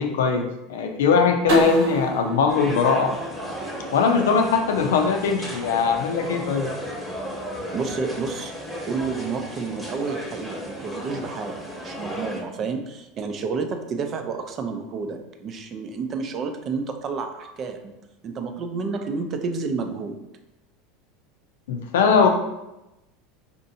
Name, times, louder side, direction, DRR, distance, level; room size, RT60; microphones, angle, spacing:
voice 1, 0.0-3.1 3.9-6.7 21.7-22.3, left 5 dB, 80° left, 4 dB, 0.5 m, -21 dB
sound 1, 1.5-4.3, left 1 dB, 80° right, 1.1 m, -27 dB
sound 2, 2.5-12.4, equal, ahead, 1.0 m, -35 dB
voice 2, 7.7-8.5 8.9-17.9 18.2-20.3, right 4 dB, 40° right, 6 dB, 0.5 m, -30 dB
4.2 x 2.6 x 2.7 m, 0.93 s
hypercardioid pair, 100°, 0 cm